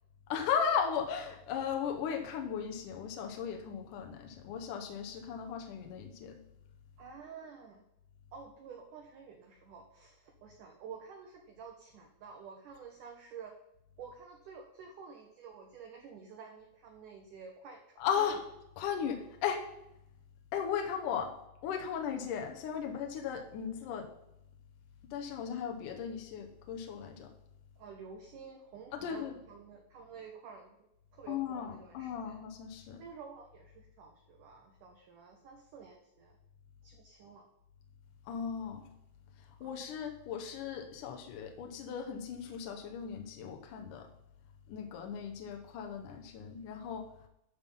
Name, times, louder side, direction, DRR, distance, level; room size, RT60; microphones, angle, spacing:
voice 1, 0.3-6.4 18.0-18.4 18.8-19.7 20.5-21.4 21.6-24.1 25.0-27.3 28.9-29.3 31.3-33.0 38.3-38.9 39.6-44.1 44.7-47.1, left 7 dB, 80° left, 4 dB, 1.8 m, -36 dB
voice 2, 7.0-7.8 8.3-13.5 14.0-18.3 27.8-30.8 31.1-32.4 33.0-36.4 36.8-37.5 39.6-39.8, right 6 dB, 75° right, 2 dB, 1.9 m, -50 dB
12.5 x 5.7 x 5.4 m, 0.81 s
omnidirectional pair, 5.1 m